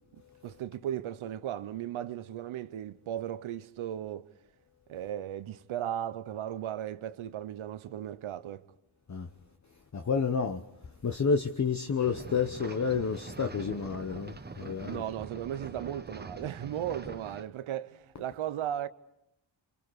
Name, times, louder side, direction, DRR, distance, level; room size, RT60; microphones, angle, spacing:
voice 1, 0.0-4.3 4.9-8.6 14.8-18.9, right 11 dB, 80° right, 0.9 m, -36 dB
voice 2, 9.9-10.6 11.0-15.0, left 5 dB, 35° left, 1.1 m, -30 dB
sound 1, 12.0-17.4, right 3 dB, 20° right, 1.1 m, -44 dB
28.0 x 26.0 x 4.8 m
cardioid pair, 60°, 48 cm